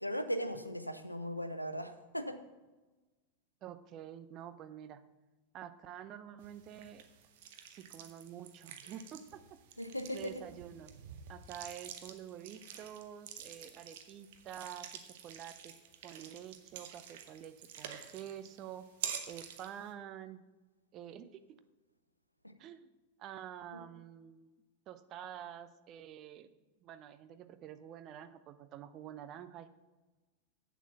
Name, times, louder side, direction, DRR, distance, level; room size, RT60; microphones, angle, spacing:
voice 1, 0.0-2.4 9.8-10.3 22.4-22.5 23.7-23.8, equal, 90° left, 9 dB, 0.7 m, -38 dB
voice 2, 3.6-5.0 5.5-7.0 7.7-9.6 10.1-10.9 11.3-15.8 16.0-18.9 19.3-20.4 20.9-21.4 22.6-22.9 23.2-24.6 24.9-26.6 26.8-29.7, right 10 dB, 35° right, 11 dB, 0.6 m, -48 dB
sound 1, 6.4-19.9, right 8 dB, 55° right, 1.0 m, -48 dB
8.5 x 7.2 x 5.6 m, 1.2 s
figure-of-eight pair, 90°, 0 cm